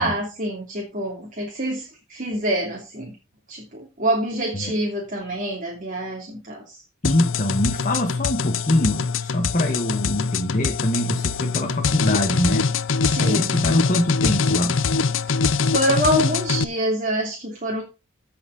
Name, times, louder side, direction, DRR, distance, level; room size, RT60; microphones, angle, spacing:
voice 1, 0.0-3.1 3.5-6.8 13.1-13.5 15.7-17.8, right 1 dB, 40° right, 3.0 m, -26 dB
sound 1, 7.0-16.6, left 5 dB, 65° left, 0.7 m, -23 dB
voice 2, 7.0-12.7 13.2-14.8, left 1 dB, 35° left, 1.6 m, -24 dB
16.5 x 6.0 x 4.1 m
head